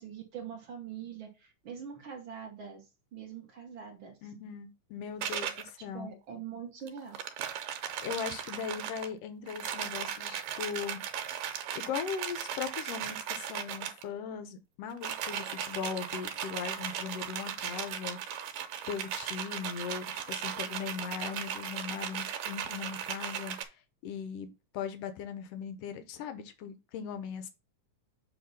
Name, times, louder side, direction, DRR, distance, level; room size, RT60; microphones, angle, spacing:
voice 1, 0.0-2.8 3.1-4.1 5.9-7.2, right 7 dB, 55° right, 1.6 m, -43 dB
voice 2, 4.2-6.1 8.0-11.0 11.7-18.4 18.9-23.8 24.0-24.5 24.7-27.5, left 7 dB, 80° left, 1.4 m, -39 dB
sound 1, 5.2-5.7 6.9-9.1 9.5-14.0 14.9-23.6, right 9 dB, 90° right, 2.6 m, -37 dB
7.9 x 2.9 x 5.4 m
omnidirectional pair, 3.7 m